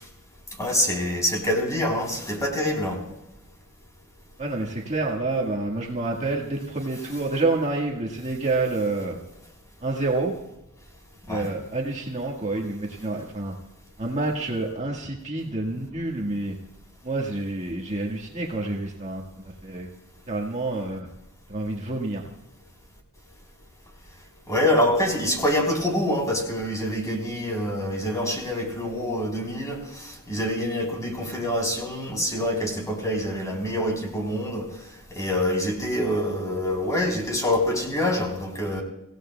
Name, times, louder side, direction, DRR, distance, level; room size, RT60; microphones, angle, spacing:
voice 1, 0.6-3.0 11.3-11.5 24.5-34.7 35.1-38.8, left 1 dB, 15° left, 0 dB, 3.4 m, -26 dB
voice 2, 4.4-9.2 9.8-10.3 11.3-13.5 14.0-16.6 17.0-19.9 20.3-21.1 21.5-22.3, right 2 dB, 35° right, -1 dB, 1.5 m, -28 dB
25.5 x 16.5 x 2.3 m, 0.91 s
head